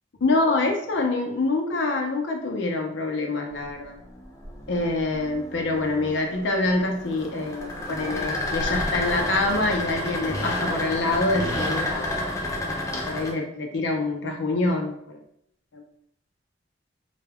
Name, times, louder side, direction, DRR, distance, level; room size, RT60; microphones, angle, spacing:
voice 1, 0.2-4.0 4.7-12.2 13.0-15.2 15.7-15.8, left 2 dB, 75° left, 2 dB, 0.5 m, -26 dB
sound 1, 3.5-13.3, left 1 dB, 15° left, 0.4 m, -30 dB
2.2 x 2.1 x 3.4 m, 0.70 s
head